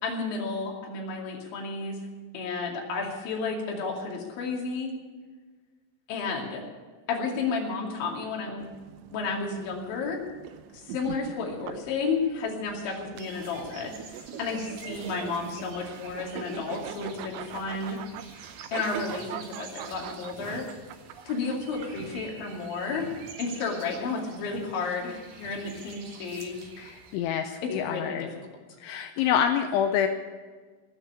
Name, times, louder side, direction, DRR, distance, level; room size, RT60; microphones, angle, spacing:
voice 1, 0.0-2.0 2.3-4.9 6.1-6.6 7.1-8.7 9.1-10.2 10.7-13.9 14.4-18.0 18.7-20.7 21.3-23.1 23.4-26.7 27.6-28.3, left 4 dB, 65° left, -1 dB, 4.7 m, -32 dB
sound 1, 8.6-22.2, right 11 dB, 85° right, 2.6 m, -42 dB
sound 2, 13.2-27.2, right 5 dB, 60° right, 3.1 m, -46 dB
voice 2, 26.8-28.3 28.8-30.1, left 9 dB, 85° left, 6 dB, 2.8 m, -27 dB
19.5 x 6.7 x 9.9 m, 1.4 s
omnidirectional pair, 6.0 m